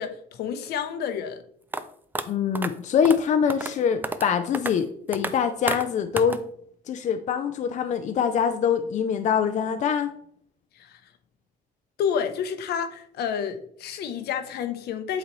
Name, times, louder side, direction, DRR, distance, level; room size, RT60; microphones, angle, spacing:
voice 1, 0.0-1.4 10.7-11.0 12.0-15.2, left 7 dB, 70° left, 9 dB, 0.8 m, -29 dB
sound 1, 1.7-1.8 2.1-2.2 2.5-2.7 3.0-3.2 3.5-3.7 4.0-4.3 4.5-4.7 5.1-5.3 5.7-5.8 6.2-6.4, right 2 dB, 10° right, 0.4 m, -29 dB
voice 2, 2.3-6.4 6.9-10.1, left 7 dB, 45° left, 8 dB, 0.5 m, -24 dB
8.2 x 3.9 x 3.1 m, 0.64 s
cardioid pair, 110°, 17 cm